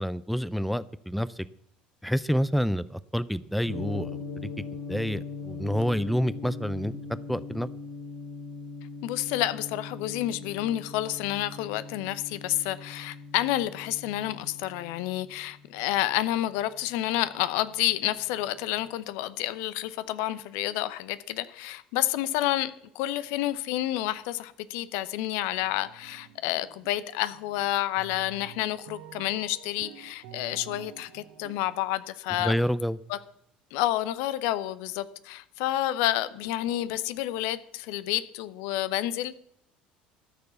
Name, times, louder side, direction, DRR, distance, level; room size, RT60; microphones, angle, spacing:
voice 1, 0.0-1.5 2.0-4.5 4.9-6.9 7.3-7.7 32.4-33.0, equal, ahead, 17 dB, 0.5 m, -28 dB
Gong, 3.6-17.8, left 4 dB, 75° left, 3.9 m, -41 dB
voice 2, 9.0-32.5 33.1-33.2 33.7-39.3, left 14 dB, 60° left, 15 dB, 0.7 m, -29 dB
sound 1, 25.1-25.3 25.6-27.0 27.3-31.8, right 10 dB, 60° right, 1.6 m, -49 dB
13.5 x 6.8 x 8.2 m, 0.73 s
figure-of-eight pair, 65°, 5 cm